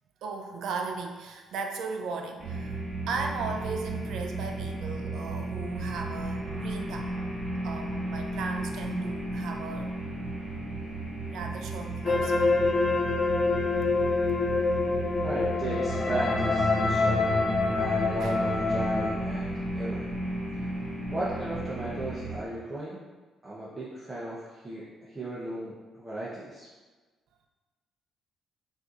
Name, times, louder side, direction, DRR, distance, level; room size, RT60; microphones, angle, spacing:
voice 1, 0.2-7.2 7.6-10.3 11.3-12.7 13.0-13.1 14.6-15.0 18.2-18.4, right 4 dB, 80° right, 4 dB, 0.4 m, -37 dB
sound 1, 2.4-22.4, right 2 dB, 40° right, 1.1 m, -34 dB
sound 2, 12.0-19.1, left 3 dB, 40° left, 0.5 m, -26 dB
voice 2, 15.2-17.3 17.7-20.1 21.1-23.0 23.4-26.7, right 1 dB, 25° right, -8 dB, 0.8 m, -36 dB
6.1 x 2.7 x 2.5 m, 1.3 s
cardioid pair, 90°, 0 cm